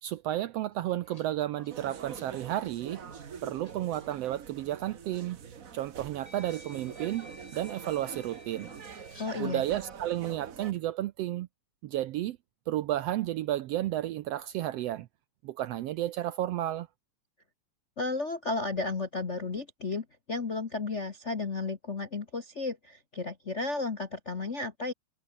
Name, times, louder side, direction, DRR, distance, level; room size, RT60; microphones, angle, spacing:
voice 1, 0.0-3.0 3.4-5.4 5.7-8.7 9.4-11.5 11.8-12.4 12.7-15.1 15.4-16.9, right 13 dB, 75° right, 1.5 m, -32 dB
sound 1, 0.7-3.7 4.0-4.2 5.3-5.4 6.2-9.6, left 2 dB, 10° left, 2.7 m, -53 dB
sound 2, 1.7-10.7, right 7 dB, 45° right, 1.1 m, -45 dB
voice 2, 9.2-9.6 18.0-24.9, left 3 dB, 40° left, 1.0 m, -33 dB
omnidirectional pair, 3.4 m